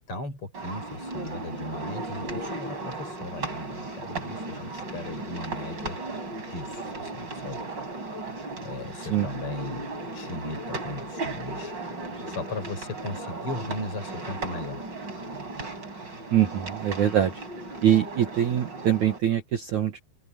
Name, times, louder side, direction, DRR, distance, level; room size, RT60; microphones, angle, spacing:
voice 1, 0.1-6.0 6.5-7.6 8.6-9.9 10.1-14.9, left 2 dB, 30° left, 6.4 m, -37 dB
sound 1, 0.5-19.2, right 2 dB, 25° right, 5.6 m, -36 dB
voice 2, 16.3-17.3 17.8-20.0, right 10 dB, 60° right, 2.1 m, -23 dB
open air
omnidirectional pair, 5.3 m